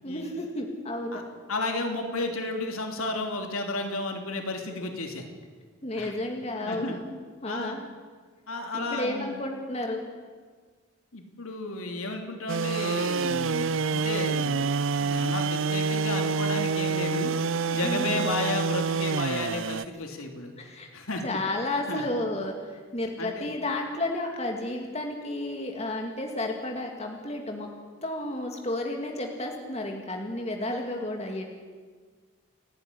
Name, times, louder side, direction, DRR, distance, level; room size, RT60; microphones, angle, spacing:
voice 1, 0.0-1.2 5.8-7.9 8.7-10.1 17.8-18.3 20.6-20.9 21.2-27.7 28.0-31.4, left 1 dB, 30° left, 2 dB, 2.3 m, -32 dB
voice 2, 1.5-5.3 5.9-6.1 6.6-6.9 7.5-7.8 8.5-9.4 11.1-14.7 15.0-17.3 17.7-20.5 20.9-21.2 21.9-22.0 23.2-23.5, left 2 dB, 75° left, 3 dB, 3.1 m, -33 dB
sound 1, 12.5-19.8, right 5 dB, 60° right, 0.5 m, -27 dB
29.5 x 11.0 x 9.9 m, 1.5 s
head